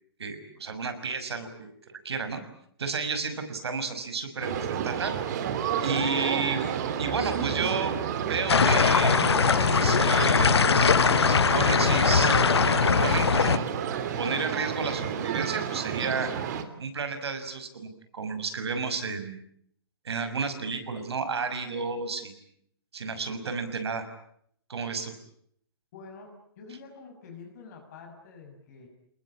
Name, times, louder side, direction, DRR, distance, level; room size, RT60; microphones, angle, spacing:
voice 1, 0.2-1.7 2.0-2.4 2.8-5.1 5.8-6.7 7.0-7.9 8.3-9.3 9.8-12.5 12.8-13.7 14.2-16.3 16.8-19.4 20.0-22.3 22.9-24.1 24.7-25.1, right 4 dB, 80° right, 9 dB, 6.1 m, -32 dB
sound 1, 4.4-16.6, right 8 dB, 45° right, 2.9 m, -30 dB
sound 2, 8.5-13.6, left 6 dB, 90° left, 1.1 m, -21 dB
voice 2, 25.9-28.9, left 4 dB, 40° left, 2 dB, 6.1 m, -47 dB
29.5 x 20.5 x 8.7 m, 0.69 s
hypercardioid pair, 155°, 13 cm